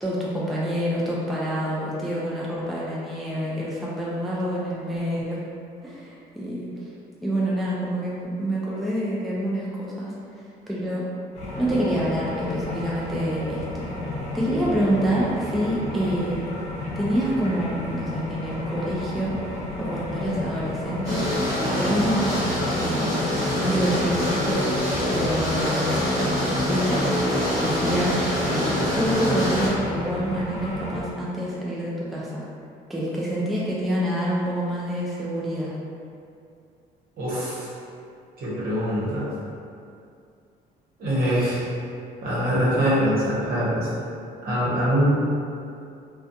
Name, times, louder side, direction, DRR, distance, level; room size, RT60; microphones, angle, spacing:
voice 1, 0.0-5.4 5.8-6.9 7.2-10.1 10.7-11.1 11.6-13.9 14.3-16.4 17.0-19.3 19.8-21.2 21.7-23.1 23.5-24.9 25.1-25.9 26.4-27.1 27.5-28.7 29.0-32.4 32.9-35.7, right 1 dB, ahead, -7 dB, 0.3 m, -27 dB
sound 1, 11.3-31.0, left 2 dB, 40° left, 0.8 m, -33 dB
sound 2, 21.0-29.7, left 1 dB, 20° right, 1.0 m, -25 dB
voice 2, 37.2-37.7 38.4-39.3 41.0-41.6 42.2-44.0 44.4-45.1, equal, 60° right, -8 dB, 0.9 m, -23 dB
2.3 x 2.2 x 2.6 m, 2.4 s
cardioid pair, 110°, 17 cm